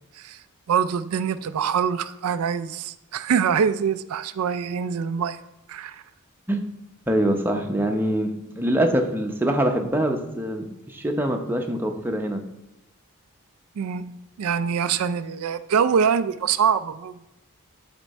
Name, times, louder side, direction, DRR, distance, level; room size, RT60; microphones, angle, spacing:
voice 1, 0.7-5.4 5.7-6.0 13.8-17.2, right 7 dB, 75° right, 11 dB, 0.4 m, -24 dB
voice 2, 7.1-12.4, right 1 dB, 10° right, 3 dB, 0.7 m, -24 dB
11.0 x 4.4 x 4.2 m, 0.90 s
head